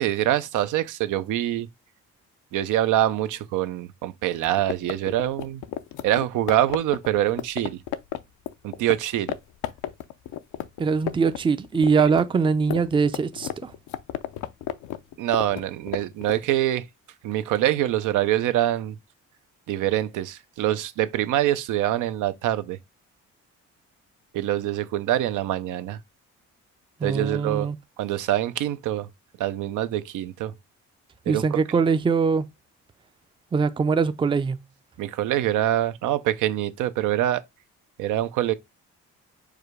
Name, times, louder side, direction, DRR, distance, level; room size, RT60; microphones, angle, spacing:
voice 1, 0.0-1.7 2.5-5.6 6.0-7.8 8.6-9.4 15.2-16.9 17.2-19.0 19.7-22.8 24.3-26.0 27.0-27.7 28.0-29.1 29.4-30.5 31.3-31.8 35.0-37.4 38.0-38.5, right 13 dB, 85° right, 0.5 m, -25 dB
sound 1, 4.3-9.0 9.3-9.4 9.6-11.4 11.6-16.4, left 12 dB, 80° left, 0.5 m, -32 dB
voice 2, 10.8-13.7 27.0-27.8 31.3-32.5 33.5-34.6, right 5 dB, 15° right, 0.4 m, -22 dB
4.9 x 2.2 x 4.8 m
cardioid pair, 90°, 30 cm